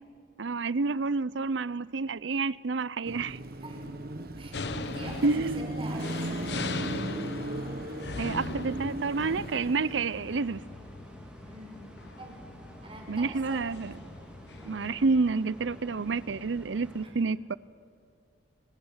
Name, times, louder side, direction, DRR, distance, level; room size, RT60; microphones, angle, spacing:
voice 1, 0.4-3.4 5.2-5.7 8.2-10.6 13.1-13.9 14.6-17.6, right 4 dB, 85° right, 19 dB, 0.6 m, -29 dB
Car passing by / Traffic noise roadway noise / Engine, 3.1-10.4, right 1 dB, 50° right, 1.2 m, -37 dB
voice 2, 4.3-7.0 11.4-11.8 12.2-12.4 12.8-14.0 17.0-17.3, right 1 dB, 30° right, 0 dB, 6.0 m, -45 dB
sound 1, 4.5-15.3, left 3 dB, 65° left, 1.1 m, -41 dB
sound 2, 6.0-17.0, equal, 5° right, 3.9 m, -48 dB
29.0 x 24.0 x 7.4 m, 2.4 s
head